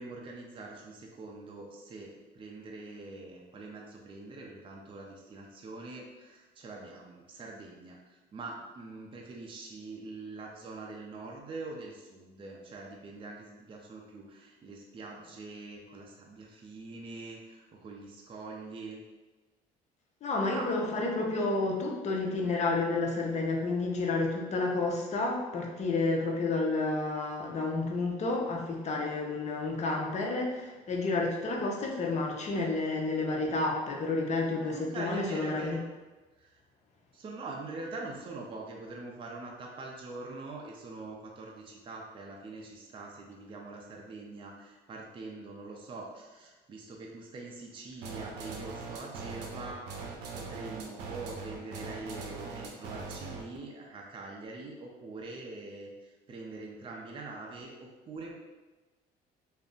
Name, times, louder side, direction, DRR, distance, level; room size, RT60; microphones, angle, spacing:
voice 1, 0.0-2.1 2.3-19.0 20.5-20.7 34.6-35.8 36.4-36.6 37.1-50.0 50.3-58.3, right 3 dB, 30° right, -1 dB, 0.5 m, -44 dB
voice 2, 20.2-35.8, left 3 dB, 40° left, 0 dB, 0.6 m, -30 dB
sound 1, 48.0-53.6, right 4 dB, 90° right, 0.5 m, -41 dB
2.5 x 2.1 x 3.6 m, 1.2 s
cardioid pair, 110°, 17 cm